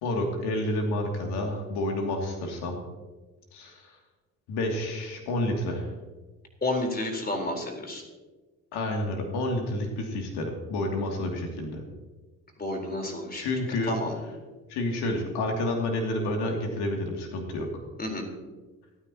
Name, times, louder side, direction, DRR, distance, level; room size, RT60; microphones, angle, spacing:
voice 1, 0.0-2.8 3.5-4.0 4.5-5.9 8.7-11.8 13.4-13.9 14.7-17.7, left 1 dB, 60° left, 2 dB, 2.6 m, -29 dB
voice 2, 6.6-8.0 12.6-13.5 13.9-14.1 18.0-18.3, left 1 dB, 20° left, 2 dB, 4.1 m, -30 dB
28.5 x 9.7 x 2.9 m, 1.3 s
figure-of-eight pair, 50°, 43 cm